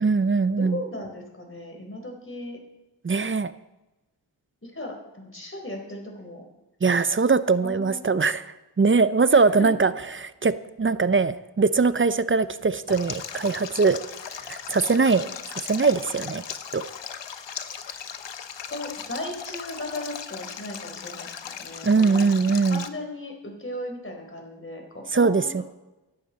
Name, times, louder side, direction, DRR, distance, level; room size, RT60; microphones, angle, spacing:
voice 1, 0.0-0.8 3.0-3.5 6.8-8.4 8.8-14.0 14.5-16.4 16.7-16.9 21.8-22.8 25.1-25.6, right 4 dB, 30° right, 14 dB, 0.6 m, -21 dB
voice 2, 0.6-2.6 4.6-6.4 7.6-8.2 9.3-9.7 18.7-22.3 22.7-25.6, left 1 dB, 30° left, 2 dB, 4.0 m, -37 dB
Stream, 12.9-22.9, left 7 dB, 70° left, 1.0 m, -38 dB
16.0 x 11.5 x 4.1 m, 1.0 s
cardioid pair, 65°, 45 cm